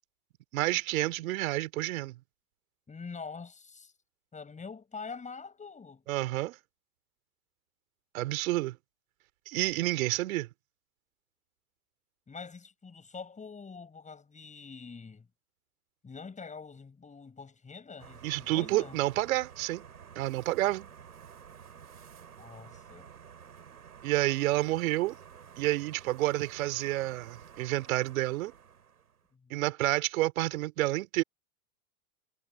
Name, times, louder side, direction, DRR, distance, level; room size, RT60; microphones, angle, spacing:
voice 1, 0.5-2.2 6.1-6.6 8.1-8.8 9.5-10.5 18.2-19.8 20.2-20.9 24.0-25.1 25.6-28.5 29.5-31.2, right 17 dB, 65° right, 4.0 m, -29 dB
voice 2, 2.9-3.9 4.3-6.0 12.3-15.3 16.0-19.0 22.4-23.1 29.3-29.6, left 5 dB, 15° left, 6.2 m, -45 dB
sound 1, 18.0-29.3, right 7 dB, 85° right, 6.4 m, -51 dB
hypercardioid pair, 100°, 44 cm